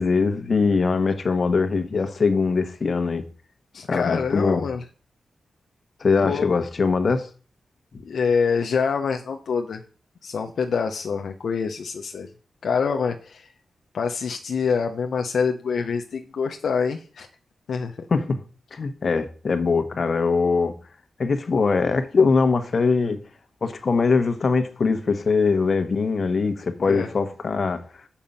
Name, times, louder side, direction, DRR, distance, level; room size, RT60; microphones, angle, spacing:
voice 1, 0.0-3.2 3.9-4.6 6.0-7.3 18.1-18.4 18.7-20.7 21.2-23.2 23.6-27.8, left 4 dB, 50° left, 1.2 m, -22 dB
voice 2, 3.7-4.8 6.2-6.5 8.0-9.8 10.2-12.3 12.6-13.5 13.9-17.3 17.7-18.1 26.9-27.1, left 5 dB, 75° left, 0.8 m, -25 dB
7.2 x 5.4 x 7.2 m
wide cardioid pair, 105°, 0 cm